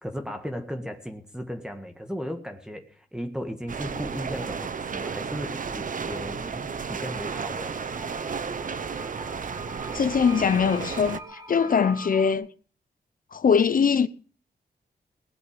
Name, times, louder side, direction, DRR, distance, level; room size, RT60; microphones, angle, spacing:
voice 1, 0.0-7.8, equal, 5° right, 1.6 m, -36 dB
sound 1, 3.7-11.2, right 6 dB, 50° right, 1.1 m, -33 dB
sound 2, 7.0-12.3, right 1 dB, 20° right, 3.4 m, -43 dB
voice 2, 9.9-12.5 13.3-14.1, left 6 dB, 55° left, 0.8 m, -22 dB
19.5 x 8.1 x 8.8 m
wide cardioid pair, 115°, 17 cm